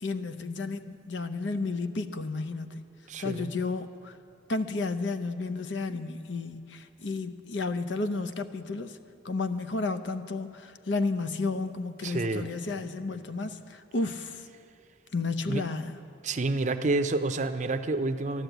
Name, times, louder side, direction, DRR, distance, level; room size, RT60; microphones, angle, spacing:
voice 1, 0.0-2.8 3.2-4.2 4.5-9.0 9.2-14.4 15.1-16.0, left 3 dB, 70° left, 10 dB, 0.7 m, -32 dB
voice 2, 3.1-3.5 12.0-12.5 15.5-15.6 16.2-18.4, right 2 dB, 40° right, 9 dB, 0.5 m, -29 dB
12.0 x 12.0 x 8.0 m, 2.4 s
head